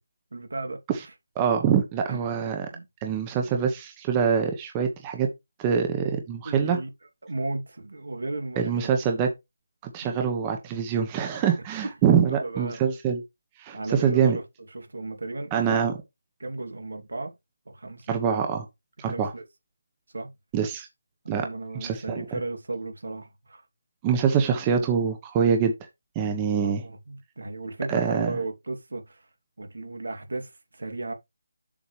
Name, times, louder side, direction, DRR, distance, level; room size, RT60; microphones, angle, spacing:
voice 1, 0.3-0.8 2.0-2.2 2.7-2.8 6.4-6.9 7.2-9.0 10.0-10.3 12.1-12.8 13.7-14.4 14.7-15.9 16.4-17.3 17.7-18.2 19.1-19.4 20.1-20.3 21.2-23.6 26.6-29.2 29.6-31.1, right 2 dB, 80° right, 2.7 m, -35 dB
voice 2, 1.4-2.7 3.0-5.3 5.6-6.8 8.6-9.3 9.8-13.2 13.6-14.4 15.5-15.9 18.1-18.6 19.0-19.3 20.5-20.9 21.3-21.5 21.7-22.2 24.0-25.7 26.1-26.8 27.9-28.3, right 7 dB, 15° right, 1.1 m, -24 dB
7.1 x 7.0 x 3.3 m
figure-of-eight pair, 165°, 0 cm